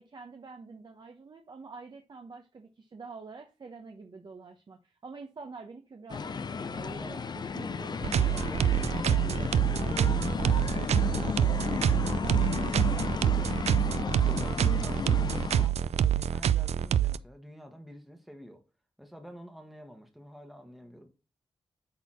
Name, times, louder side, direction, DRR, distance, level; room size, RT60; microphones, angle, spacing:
voice 1, 0.0-8.0 12.7-13.0, right 4 dB, 45° right, 0.9 m, -46 dB
sound 1, 6.1-15.7, left 5 dB, 40° left, 0.5 m, -33 dB
sound 2, 8.0-17.2, right 10 dB, 90° right, 0.4 m, -26 dB
voice 2, 8.3-12.2 12.6-15.1 15.5-18.6 19.0-21.1, equal, ahead, 1.3 m, -48 dB
8.8 x 4.1 x 4.2 m
wide cardioid pair, 140°, 11 cm